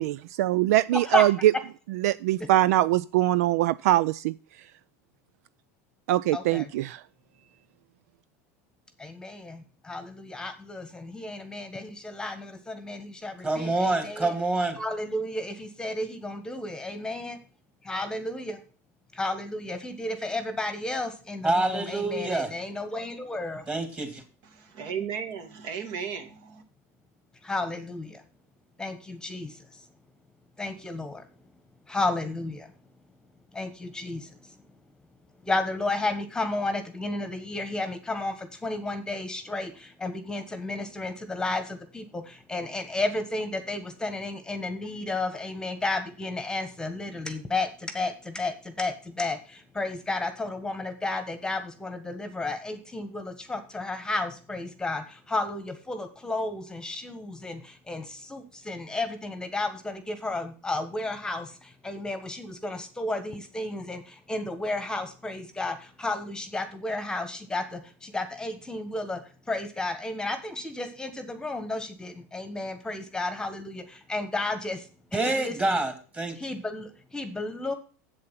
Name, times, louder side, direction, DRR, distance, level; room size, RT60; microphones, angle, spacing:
voice 1, 0.0-1.5 1.9-4.3 6.1-7.0, right 15 dB, 70° right, 0.4 m, -23 dB
voice 2, 0.9-1.2 6.3-6.7 9.0-14.3 14.8-17.4 17.9-18.6 19.1-23.6 27.4-28.2 28.8-29.6 30.6-31.2 31.9-32.7 33.5-34.3 35.4-69.2 69.5-74.9 75.1-75.8 76.4-77.7, left 2 dB, 10° left, 1.3 m, -32 dB
voice 3, 13.4-14.8 21.4-22.5 23.7-24.2 75.1-76.4, right 2 dB, 15° right, 2.4 m, -26 dB
voice 4, 24.5-26.6, right 7 dB, 55° right, 2.2 m, -35 dB
7.9 x 7.6 x 5.8 m
supercardioid pair, 120°, 8 cm